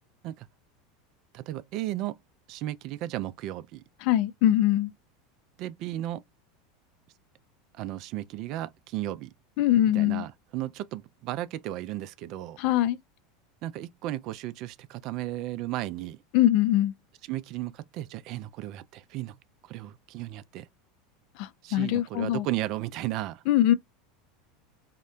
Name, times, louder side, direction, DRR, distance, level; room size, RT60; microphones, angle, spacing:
voice 1, 1.3-2.2 2.5-3.8 5.6-6.2 7.8-9.3 9.9-12.6 13.6-16.2 17.3-19.3 19.7-20.7 21.6-23.4, right 14 dB, 50° right, 0.3 m, -34 dB
voice 2, 4.0-4.9 9.6-10.3 12.6-13.0 16.3-16.9 21.7-22.5 23.5-23.7, left 13 dB, 55° left, 0.3 m, -22 dB
2.8 x 2.1 x 2.4 m
hypercardioid pair, 80°, 0 cm